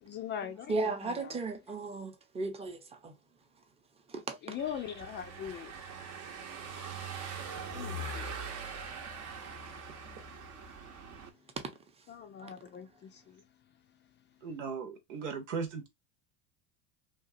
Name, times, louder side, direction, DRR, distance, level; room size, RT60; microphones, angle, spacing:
voice 1, 0.0-1.4 4.4-5.8 7.7-8.3 12.1-13.4, left 9 dB, 30° left, 0.4 m, -41 dB
voice 2, 0.7-3.1 4.1-4.4 12.4-12.5, right 3 dB, 15° right, 0.7 m, -35 dB
Car passing by / Engine, 4.6-11.3, right 3 dB, 45° right, 0.8 m, -42 dB
voice 3, 14.4-15.9, right 5 dB, 80° right, 1.0 m, -37 dB
2.9 x 2.4 x 2.6 m
hypercardioid pair, 95°, 36 cm